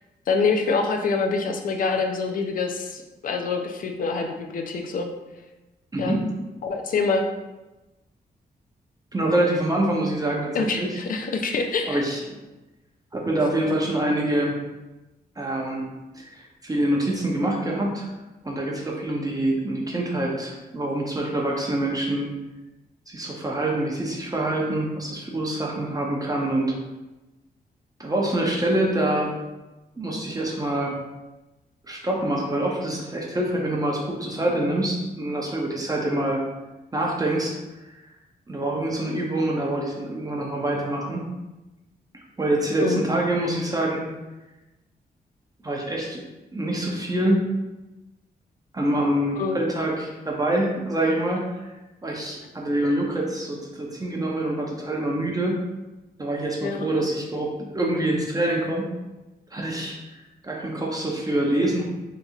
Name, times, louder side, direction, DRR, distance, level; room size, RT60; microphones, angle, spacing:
voice 1, 0.3-5.1 6.0-6.2 6.6-7.2 10.5-12.0 42.8-43.0 49.4-49.6 56.6-56.9, left 4 dB, 55° left, 3 dB, 0.5 m, -25 dB
voice 2, 5.9-6.3 9.1-10.9 11.9-12.2 13.1-14.5 15.4-15.8 16.1-18.1 18.4-22.3 23.1-26.8 28.0-29.3 30.0-31.0 31.9-36.4 36.9-37.5 38.5-41.2 42.4-44.0 45.6-46.2 46.5-47.5 48.7-51.7 52.0-55.6 56.2-58.9 59.5-59.9 60.4-61.8, right 1 dB, 20° right, -1 dB, 0.6 m, -25 dB
3.9 x 2.8 x 2.3 m, 1.1 s
cardioid pair, 85°, 17 cm